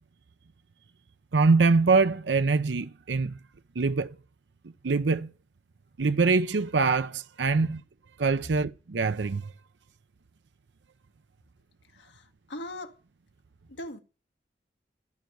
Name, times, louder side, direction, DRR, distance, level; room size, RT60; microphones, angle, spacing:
voice 1, 1.3-3.4 3.8-4.2 4.8-5.3 6.0-7.8 8.2-9.5, right 4 dB, 80° right, 0.6 m, -24 dB
voice 2, 11.9-13.0 13.7-14.0, left 1 dB, 85° left, 1.5 m, -40 dB
14.0 x 5.3 x 9.3 m
head